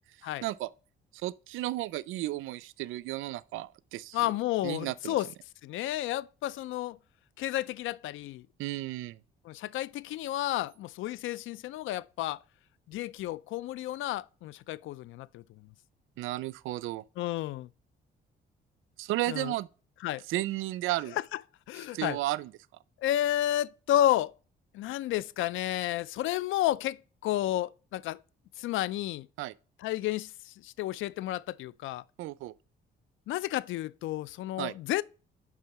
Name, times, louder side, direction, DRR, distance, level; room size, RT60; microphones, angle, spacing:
voice 1, 1.2-4.2 4.6-5.2 8.6-9.2 16.2-17.0 19.0-19.7 20.3-21.2 21.9-22.5 29.4-29.5 32.2-32.5 34.6-34.7, right 16 dB, 90° right, 0.4 m, -33 dB
voice 2, 4.1-5.3 5.6-7.0 7.4-8.4 9.5-12.4 12.9-15.4 17.2-17.7 19.3-19.5 20.0-20.2 21.7-22.2 23.0-24.3 24.7-28.2 28.6-29.3 29.8-32.0 33.3-35.0, left 13 dB, 80° left, 0.4 m, -31 dB
10.5 x 3.7 x 5.9 m
cardioid pair, 90°, 20 cm